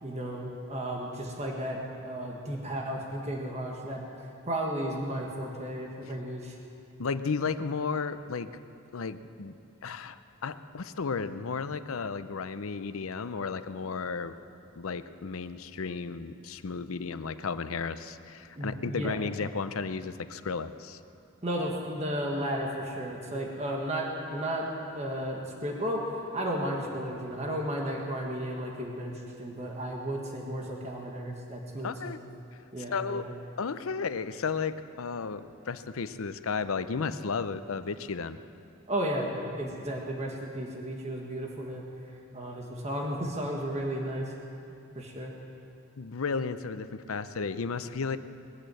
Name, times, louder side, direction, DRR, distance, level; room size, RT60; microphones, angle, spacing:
voice 1, 0.0-4.0 4.5-6.6 18.6-19.2 21.4-24.7 24.9-29.1 29.4-32.2 32.7-33.3 38.9-41.8 42.3-44.3 44.9-45.3, equal, 30° right, -1 dB, 1.6 m, -34 dB
voice 2, 7.0-8.5 8.9-9.6 9.8-14.3 14.7-21.0 31.8-32.2 32.9-33.3 33.6-38.4 46.0-48.2, left 5 dB, 90° left, 12 dB, 0.6 m, -33 dB
21.5 x 8.6 x 7.7 m, 2.6 s
head